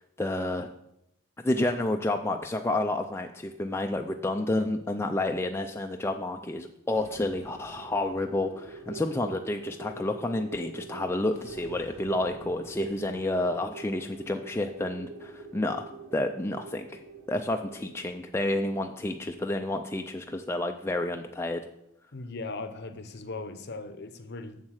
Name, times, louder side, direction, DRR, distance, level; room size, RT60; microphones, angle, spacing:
voice 1, 0.2-0.7 1.4-16.9 17.3-21.6, left 2 dB, 10° left, 0.4 m, -30 dB
sound 1, 6.9-20.5, right 4 dB, 80° right, 2.1 m, -46 dB
voice 2, 22.1-24.6, left 3 dB, 50° left, 0.7 m, -39 dB
7.4 x 7.3 x 6.3 m
head